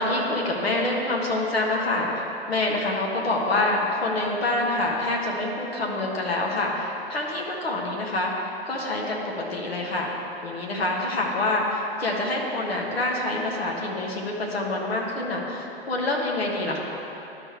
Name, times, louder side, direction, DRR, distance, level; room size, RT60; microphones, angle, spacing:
voice 1, 0.0-10.1 10.4-16.8, left 2 dB, 80° left, -2 dB, 1.7 m, -26 dB
12.5 x 5.2 x 3.2 m, 2.9 s
hypercardioid pair, 125°, 31 cm